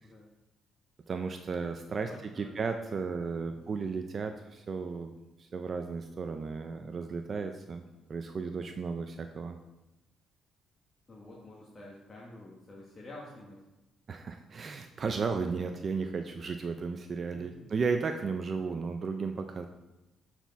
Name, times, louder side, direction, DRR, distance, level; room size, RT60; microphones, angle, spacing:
voice 1, 1.1-2.1 2.4-5.1 5.4-7.8 8.1-9.6 14.1-19.7, right 5 dB, 45° right, 6 dB, 0.5 m, -34 dB
voice 2, 2.0-2.6 3.1-3.6 11.1-13.6 17.3-17.7, left 1 dB, 30° left, -4 dB, 1.3 m, -49 dB
8.0 x 4.4 x 4.0 m, 0.97 s
cardioid pair, 90°, 0 cm